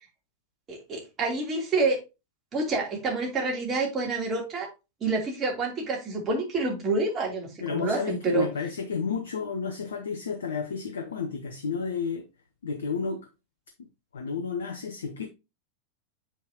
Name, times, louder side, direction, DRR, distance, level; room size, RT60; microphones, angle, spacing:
voice 1, 0.7-2.0 2.5-4.7 5.0-8.5, right 3 dB, 25° right, 3.4 m, -28 dB
voice 2, 7.6-12.3 12.6-13.3 14.1-15.3, left 5 dB, 65° left, 0.9 m, -31 dB
7.6 x 5.7 x 2.9 m
figure-of-eight pair, 90°, 0 cm